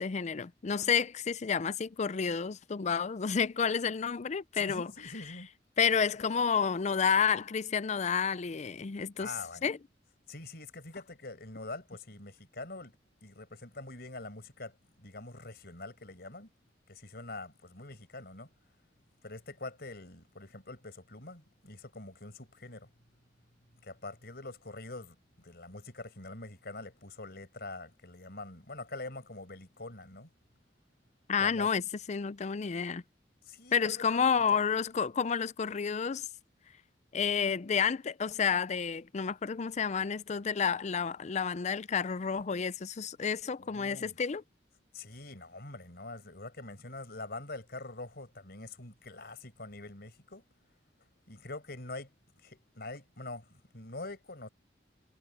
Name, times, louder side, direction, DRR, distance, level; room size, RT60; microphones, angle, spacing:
voice 1, 0.0-4.9 5.8-9.3 9.6-9.8 31.3-31.8 32.1-33.0 33.7-36.3 37.1-44.4, left 6 dB, 40° left, 0.5 m, -30 dB
voice 2, 4.5-5.5 9.2-9.6 10.3-13.0 13.2-16.5 16.9-18.5 19.2-22.9 23.7-30.3 31.4-31.7 33.4-34.2 34.5-34.6 43.6-44.2 44.9-50.4 51.3-52.1 52.4-54.5, left 2 dB, 60° left, 5.7 m, -44 dB
head